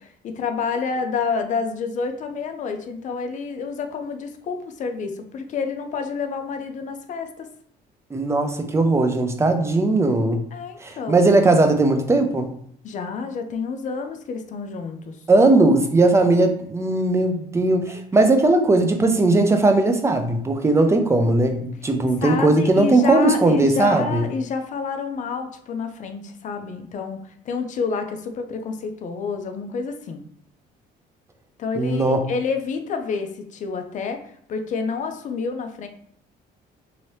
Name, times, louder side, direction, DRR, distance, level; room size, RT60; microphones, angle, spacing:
voice 1, 0.0-7.5 10.5-11.3 12.8-15.2 17.9-18.3 22.2-30.2 31.6-35.9, left 5 dB, 50° left, 0.5 m, -29 dB
voice 2, 8.1-10.4 10.8-12.5 15.3-24.2 31.8-32.2, right 2 dB, 15° right, 0.5 m, -18 dB
2.9 x 2.7 x 3.1 m
cardioid pair, 110°, 17 cm